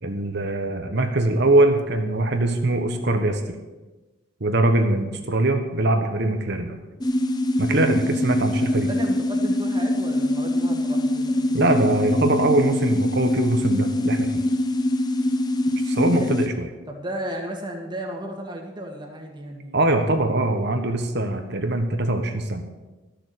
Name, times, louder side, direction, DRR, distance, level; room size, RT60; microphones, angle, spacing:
voice 1, 0.0-3.4 4.4-6.8 7.6-8.9 11.5-14.4 15.8-16.7 19.7-22.6, right 2 dB, 50° right, 5 dB, 1.2 m, -22 dB
sound 1, 7.0-16.5, left 1 dB, 20° left, 0.7 m, -23 dB
voice 2, 8.7-11.9 16.2-16.3 16.9-20.0, right 1 dB, 20° right, 1 dB, 1.8 m, -34 dB
13.0 x 6.8 x 7.8 m, 1.2 s
head